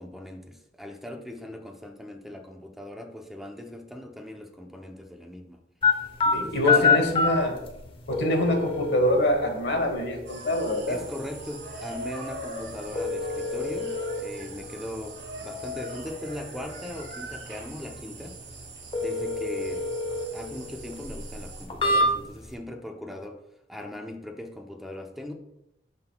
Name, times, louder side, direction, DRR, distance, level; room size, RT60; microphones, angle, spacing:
voice 1, 0.0-5.6 6.2-7.0 10.9-18.4 19.0-19.9 20.3-23.4 23.7-25.3, left 1 dB, ahead, 3 dB, 0.6 m, -39 dB
sound 1, 5.8-22.5, left 3 dB, 30° left, 0.8 m, -29 dB
voice 2, 6.3-7.6 8.1-11.0, left 1 dB, 70° left, 3 dB, 1.2 m, -25 dB
sound 2, 10.3-21.7, right 1 dB, 75° right, 1.4 m, -42 dB
11.5 x 3.9 x 2.2 m, 0.85 s
head